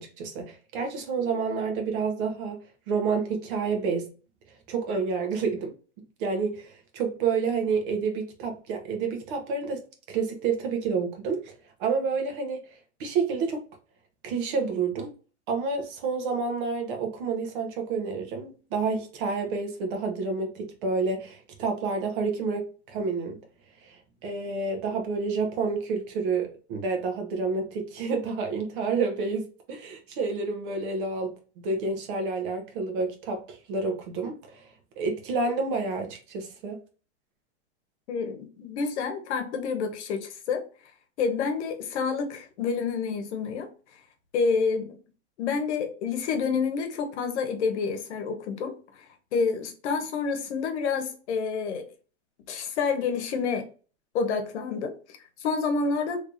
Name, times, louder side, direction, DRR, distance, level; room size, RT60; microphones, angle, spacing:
voice 1, 0.0-2.6 2.9-4.1 4.7-9.8 10.1-11.5 11.8-12.6 13.0-13.6 14.2-15.1 15.5-23.4 23.8-34.7 35.0-36.8, right 4 dB, 50° right, 1.0 m, -29 dB
voice 2, 38.1-40.6 41.2-43.7 44.3-44.9 45.4-48.7 49.3-51.9 52.5-53.6 54.1-56.2, left 5 dB, 70° left, 1.0 m, -28 dB
3.3 x 3.2 x 2.5 m
supercardioid pair, 155°, 35 cm